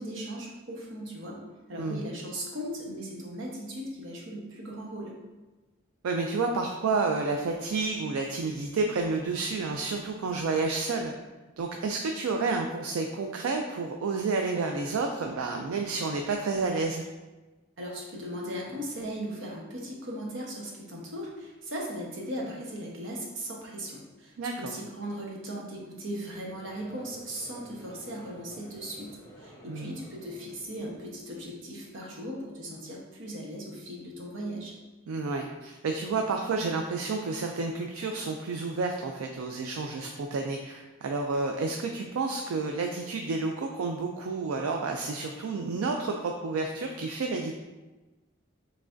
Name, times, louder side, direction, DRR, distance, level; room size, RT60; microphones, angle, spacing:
voice 1, 0.0-1.4 1.7-5.2 17.8-29.1 29.4-34.7, equal, 65° right, -2 dB, 1.0 m, -38 dB
voice 2, 6.0-11.1 11.6-17.0 24.4-24.7 29.7-30.0 35.1-47.5, right 3 dB, 90° right, 3 dB, 0.4 m, -30 dB
Conversation / Crowd, 26.3-31.6, equal, 15° left, 0.7 m, -52 dB
6.0 x 3.2 x 2.5 m, 1.2 s
head